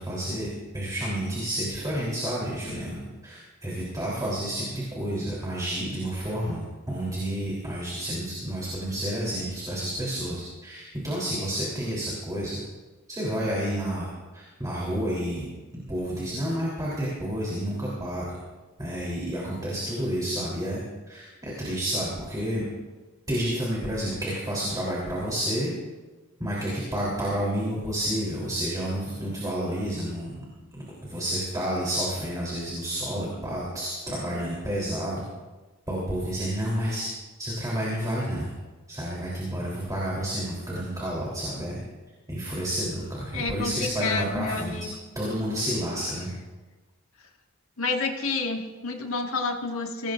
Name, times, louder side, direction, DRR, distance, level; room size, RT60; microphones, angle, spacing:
voice 1, 0.0-12.6 13.1-14.1 14.3-15.5 15.9-18.4 18.8-20.8 21.1-22.7 23.3-25.7 26.4-30.4 30.7-35.2 35.9-37.1 37.4-38.5 38.9-41.8 42.3-44.7 45.2-46.3, equal, 15° right, -5 dB, 3.6 m, -30 dB
voice 2, 43.3-44.9 47.8-50.1, left 3 dB, 70° left, 3 dB, 1.8 m, -29 dB
22.5 x 18.5 x 2.6 m, 1.3 s
head